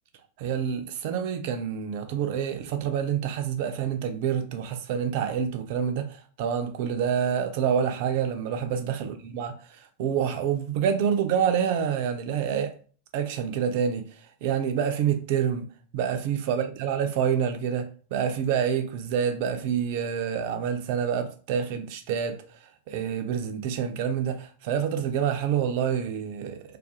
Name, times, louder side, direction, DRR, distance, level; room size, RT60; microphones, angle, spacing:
voice 1, 0.4-6.1 6.4-9.5 10.0-12.7 13.1-14.0 14.4-15.7 15.9-22.4 22.9-26.8, right 8 dB, 50° right, 0.3 m, -27 dB
2.4 x 2.3 x 2.6 m
figure-of-eight pair, 90°, 0 cm